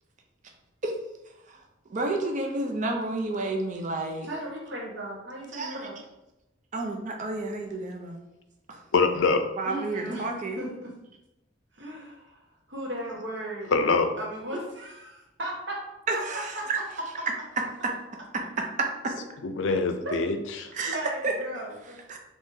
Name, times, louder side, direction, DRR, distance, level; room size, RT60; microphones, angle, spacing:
voice 1, 1.9-4.3 5.5-5.9 6.7-8.2 8.7-8.8 9.6-10.6 16.1-16.8 17.8-17.9 18.8-19.1 20.7-21.0 21.2-21.3 22.1-22.2, right 2 dB, 40° right, 2 dB, 0.5 m, -30 dB
voice 2, 4.2-6.0 9.7-10.9 11.7-12.4 12.7-13.7 14.2-15.8 16.5-16.6 20.0-20.2 20.9-22.0, right 1 dB, 70° right, -3 dB, 1.2 m, -36 dB
voice 3, 8.9-9.4 13.7-14.1 19.4-20.7, left 4 dB, 90° left, 7 dB, 0.4 m, -24 dB
3.7 x 3.0 x 2.7 m, 0.94 s
head